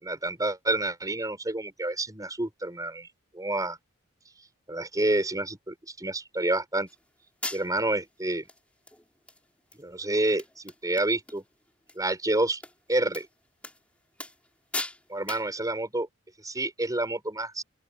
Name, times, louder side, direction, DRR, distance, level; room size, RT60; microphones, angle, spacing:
voice 1, 0.0-3.1 3.3-3.8 4.7-6.9 7.5-8.4 9.7-11.4 11.9-12.6 12.9-13.3 15.1-16.1 16.4-17.6, right 2 dB, 15° right, 5.0 m, -28 dB
sound 1, 6.9-7.0 7.4-8.0 8.5-8.6 8.9-9.4 9.7-9.8 10.1-10.2 10.4-11.4 11.7-12.0 12.6-12.7 13.1-13.3 13.6-13.8 14.2-14.5 14.7-15.0 15.3-15.5, left 2 dB, 5° left, 4.0 m, -37 dB
open air
head